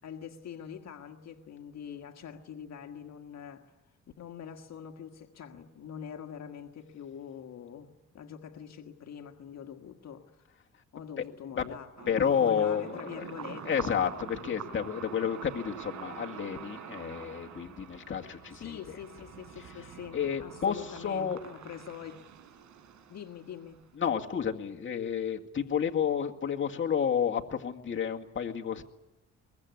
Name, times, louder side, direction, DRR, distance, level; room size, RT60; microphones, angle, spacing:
voice 1, 0.0-3.7 4.2-10.5 10.9-13.6 18.5-22.2 23.1-23.8, left 8 dB, 60° left, 4 dB, 1.6 m, -44 dB
sound 1, 12.0-24.0, right 8 dB, 70° right, 4.5 m, -46 dB
voice 2, 12.1-13.2 13.7-19.0 20.1-21.4 24.0-28.8, left 7 dB, 40° left, 2 dB, 2.0 m, -30 dB
23.5 x 21.5 x 9.5 m, 0.97 s
cardioid pair, 90°, 30 cm